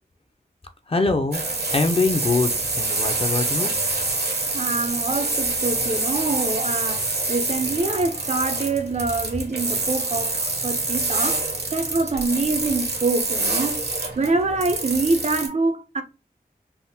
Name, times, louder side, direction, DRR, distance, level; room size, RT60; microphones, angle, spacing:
voice 1, 0.9-1.4 1.7-3.7, left 3 dB, 35° left, 0.5 m, -23 dB
sound 1, 1.3-15.5, right 3 dB, 75° right, 0.9 m, -26 dB
voice 2, 4.5-11.4 11.7-16.0, right 3 dB, 45° right, 0.5 m, -25 dB
3.4 x 2.0 x 2.6 m
wide cardioid pair, 55°, 17 cm